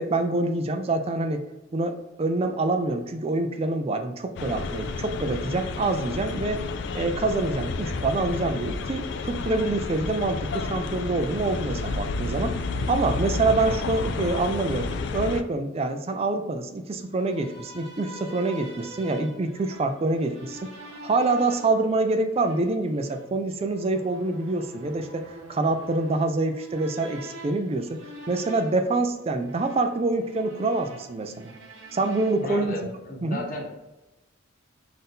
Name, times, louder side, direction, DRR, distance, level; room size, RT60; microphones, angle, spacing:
voice 1, 0.0-1.4 1.7-6.6 6.9-12.5 12.9-14.9 15.1-31.5 31.9-32.7 33.2-33.4, right 2 dB, 30° right, 7 dB, 0.3 m, -26 dB
sound 1, 4.4-15.4, left 3 dB, 55° left, 0.3 m, -31 dB
sound 2, 17.1-32.6, right 1 dB, 70° right, 0.9 m, -46 dB
voice 2, 32.4-33.6, left 1 dB, 40° left, -1 dB, 1.0 m, -34 dB
3.9 x 2.6 x 3.6 m, 1.0 s
head